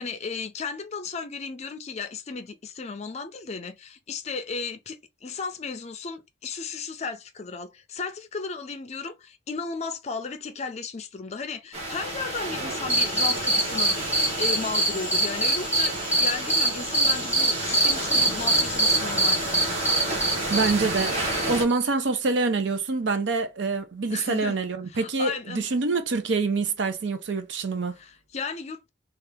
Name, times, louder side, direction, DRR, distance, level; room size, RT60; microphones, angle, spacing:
voice 1, 0.0-19.4 24.1-24.6 24.9-25.7 28.0-28.9, left 4 dB, 35° left, 0.4 m, -35 dB
sound 1, 11.7-21.6, right 1 dB, 35° right, 1.0 m, -31 dB
sound 2, 12.9-21.9, right 1 dB, 10° right, 1.0 m, -24 dB
voice 2, 20.5-21.2 21.5-27.9, right 3 dB, 70° right, 0.6 m, -26 dB
2.8 x 2.4 x 3.4 m
head